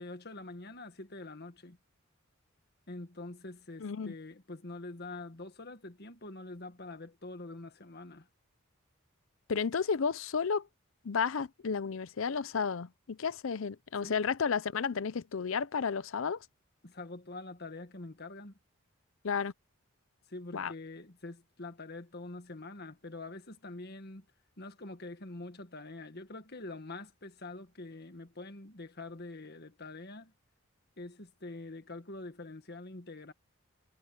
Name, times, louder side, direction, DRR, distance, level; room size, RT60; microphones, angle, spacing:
voice 1, 0.0-1.8 2.9-8.3 14.0-14.2 16.8-18.6 20.3-24.2 24.6-30.3 31.0-33.3, left 2 dB, 50° left, 1.7 m, -45 dB
voice 2, 3.8-4.1 9.5-10.7 11.0-16.4 19.2-19.5 20.5-20.7, left 6 dB, 70° left, 0.6 m, -32 dB
head